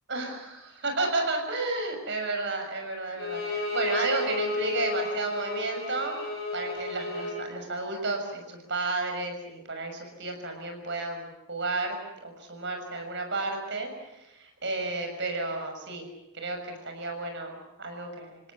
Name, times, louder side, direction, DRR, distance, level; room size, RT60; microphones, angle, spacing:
voice 1, 0.1-6.1 6.5-12.0 12.2-16.1 16.3-18.4, right 2 dB, 55° right, 4 dB, 6.4 m, -32 dB
Bowed string instrument, 3.2-7.4, left 2 dB, 50° left, 8.0 m, -32 dB
29.5 x 18.0 x 8.5 m, 0.90 s
head